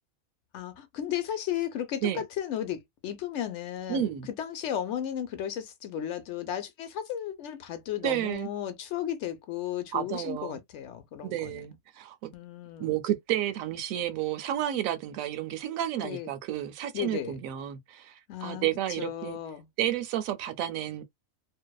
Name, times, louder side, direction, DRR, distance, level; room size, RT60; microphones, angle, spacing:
voice 1, 0.5-4.1 4.4-11.7 12.3-13.0 16.0-16.3 16.9-17.3 18.3-18.7 19.0-19.7, left 10 dB, 65° left, 0.8 m, -34 dB
voice 2, 3.9-4.3 8.0-8.5 9.9-10.6 11.2-12.3 12.8-18.1 18.4-19.4 19.8-21.0, right 11 dB, 80° right, 1.0 m, -31 dB
2.6 x 2.1 x 2.2 m
omnidirectional pair, 1.4 m